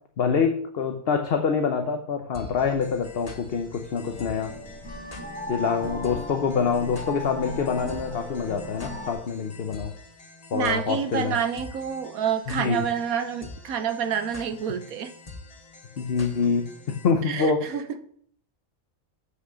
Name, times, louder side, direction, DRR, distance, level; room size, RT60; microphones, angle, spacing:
voice 1, 0.2-4.5 5.5-9.9 10.5-11.4 12.6-12.8 16.0-17.7, left 5 dB, 50° left, 5 dB, 0.9 m, -26 dB
sound 1, 2.3-17.1, left 3 dB, 30° left, 1.0 m, -46 dB
sound 2, 4.0-9.1, left 1 dB, 5° right, 5.1 m, -37 dB
voice 2, 10.5-15.1 17.3-18.0, right 8 dB, 80° right, 10 dB, 1.3 m, -28 dB
7.9 x 6.5 x 6.3 m, 0.63 s
omnidirectional pair, 1.5 m